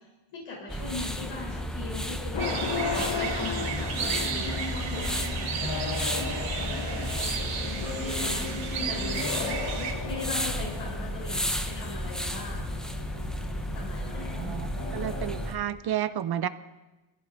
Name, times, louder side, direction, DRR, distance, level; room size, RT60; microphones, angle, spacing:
voice 1, 0.3-5.9 6.4-7.1 7.6-12.7 13.7-14.7, left 3 dB, 85° left, -5 dB, 4.3 m, -40 dB
sound 1, 0.7-15.5, equal, ahead, 0.6 m, -33 dB
sound 2, 2.3-15.5, left 4 dB, 65° left, 1.9 m, -35 dB
sound 3, 2.4-9.9, right 6 dB, 65° right, 3.1 m, -35 dB
voice 2, 14.3-16.5, right 10 dB, 50° right, 13 dB, 0.6 m, -31 dB
24.5 x 15.5 x 2.7 m, 1.1 s
wide cardioid pair, 165°, 49 cm